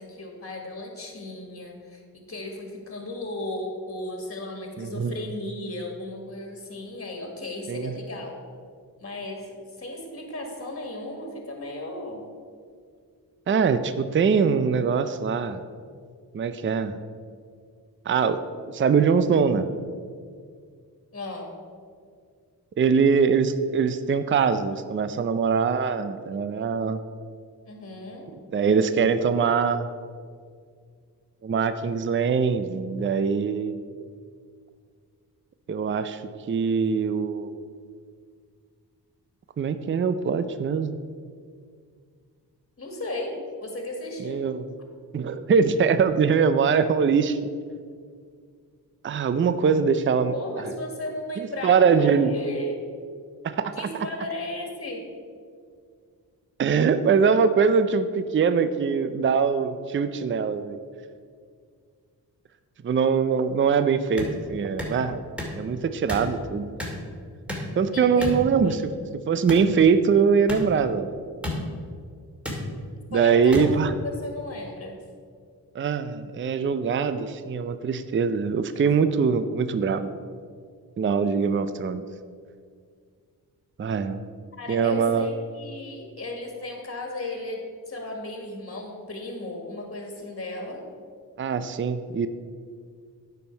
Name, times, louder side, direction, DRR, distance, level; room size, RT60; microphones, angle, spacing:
voice 1, 0.0-8.4 9.0-12.2 21.1-21.5 27.7-28.3 42.8-43.4 43.6-44.5 50.3-52.8 53.7-55.0 67.9-68.8 73.1-73.7 74.0-75.0 84.6-90.8, left 1 dB, 35° left, 2 dB, 1.8 m, -35 dB
voice 2, 4.8-5.1 7.7-7.9 13.5-15.6 16.3-17.0 18.1-18.4 18.7-19.7 22.8-27.0 28.5-29.9 31.4-33.8 35.7-36.2 36.5-37.6 39.6-40.9 44.2-44.7 45.1-47.4 49.0-50.3 51.4-52.3 53.4-53.9 56.6-60.8 62.8-65.2 65.6-66.7 67.8-68.8 69.3-71.1 73.1-73.9 75.7-80.1 81.0-82.0 83.8-84.2 84.7-85.3 91.4-92.3, right 6 dB, 30° right, 11 dB, 0.5 m, -22 dB
sound 1, 64.2-64.3 64.8-64.9 65.4-65.6 66.1-66.3 66.8-67.0 67.5-67.7 68.2-68.4 69.5-69.7 70.5-70.6 71.4-71.6 72.4-72.6 73.5-73.7, left 1 dB, 5° right, 2.1 m, -30 dB
9.2 x 5.6 x 4.5 m, 2.1 s
cardioid pair, 50°, 40 cm